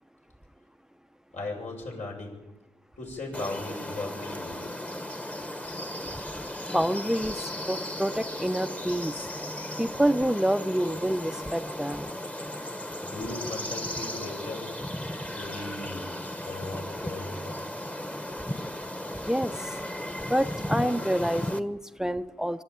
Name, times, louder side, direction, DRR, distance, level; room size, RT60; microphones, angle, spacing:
voice 1, 1.3-2.4 3.0-4.6 13.0-14.7 15.3-17.6, left 2 dB, 75° left, -1 dB, 7.1 m, -37 dB
sound 1, 3.3-21.6, left 1 dB, 10° left, 1.2 m, -36 dB
voice 2, 6.7-7.4 7.7-9.1 9.8-12.1 19.3-19.5 20.2-22.6, equal, 5° right, 11 dB, 0.7 m, -27 dB
24.5 x 12.5 x 8.9 m, 1.0 s
cardioid pair, 70°, 12 cm